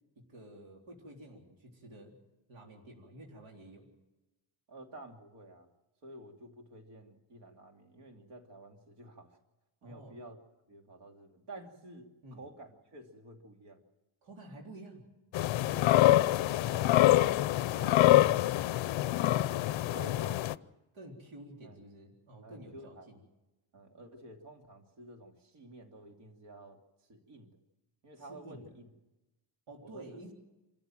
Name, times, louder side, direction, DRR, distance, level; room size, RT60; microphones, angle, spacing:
voice 1, 0.2-2.2 2.5-3.9 9.8-10.2 12.2-12.4 14.2-15.0 20.0-20.3 20.9-23.2 28.2-28.7 29.7-30.3, right 1 dB, 80° right, -1 dB, 3.8 m, -50 dB
voice 2, 4.7-5.7 6.0-9.4 9.8-10.4 10.7-13.8 15.6-17.4 17.7-18.8 19.9-20.4 21.6-21.8 22.4-23.1 23.7-26.8 27.1-27.6 28.0-28.9 29.8-30.2, right 1 dB, 65° right, 3 dB, 2.8 m, -51 dB
sound 1, 15.3-20.5, left 15 dB, 80° left, 0.6 m, -25 dB
26.5 x 14.0 x 7.7 m, 1.0 s
wide cardioid pair, 165°, 45 cm